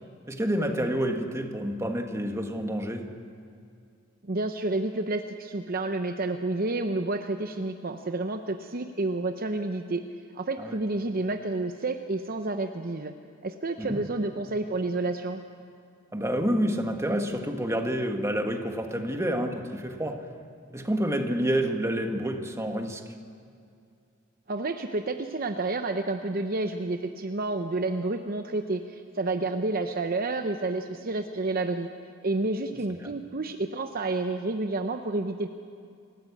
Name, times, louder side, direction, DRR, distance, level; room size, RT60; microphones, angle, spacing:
voice 1, 0.3-3.1 10.6-10.8 13.8-14.1 16.1-20.2 20.7-23.0 33.0-33.1, equal, 15° right, 4 dB, 1.8 m, -28 dB
voice 2, 4.2-10.0 10.3-13.1 13.4-15.4 24.5-31.9 32.2-35.5, right 2 dB, 45° right, 6 dB, 0.8 m, -30 dB
28.0 x 14.5 x 8.6 m, 2.4 s
head